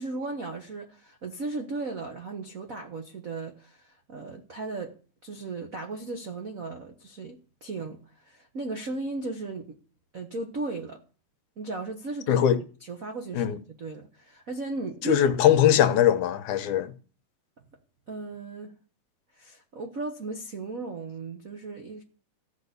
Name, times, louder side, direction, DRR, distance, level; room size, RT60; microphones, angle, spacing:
voice 1, 0.0-5.0 5.2-9.7 10.1-11.0 11.6-12.4 12.8-15.2 15.5-15.8 18.1-18.7 19.3-22.0, right 3 dB, 75° right, 0.7 m, -36 dB
voice 2, 12.3-12.6 13.3-13.6 15.0-16.9, left 10 dB, 80° left, 2.4 m, -21 dB
14.5 x 5.4 x 8.2 m
omnidirectional pair, 3.5 m